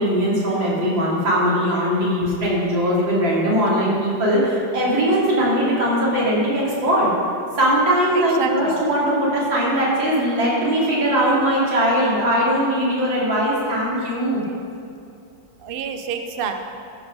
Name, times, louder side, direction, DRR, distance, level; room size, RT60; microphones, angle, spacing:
voice 1, 0.0-7.1 7.6-14.4, equal, 85° right, -6 dB, 3.3 m, -20 dB
voice 2, 8.1-8.8 15.6-16.5, right 7 dB, 60° right, 6 dB, 0.5 m, -28 dB
13.5 x 6.3 x 6.2 m, 2.6 s
omnidirectional pair, 2.0 m